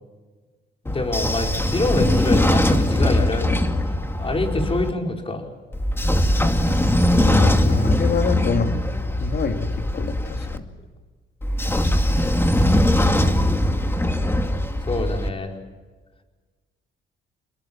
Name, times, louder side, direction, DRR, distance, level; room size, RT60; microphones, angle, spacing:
voice 1, 0.8-3.6 4.2-5.5 14.9-15.5, left 2 dB, 30° left, 2 dB, 5.0 m, -25 dB
Train / Sliding door, 0.9-4.9 5.7-10.6 11.4-15.3, left 1 dB, 10° left, 2.3 m, -21 dB
voice 2, 7.2-8.8 9.2-10.7, left 4 dB, 55° left, 6 dB, 2.6 m, -25 dB
29.5 x 20.5 x 7.4 m, 1.4 s
cardioid pair, 90°, 20 cm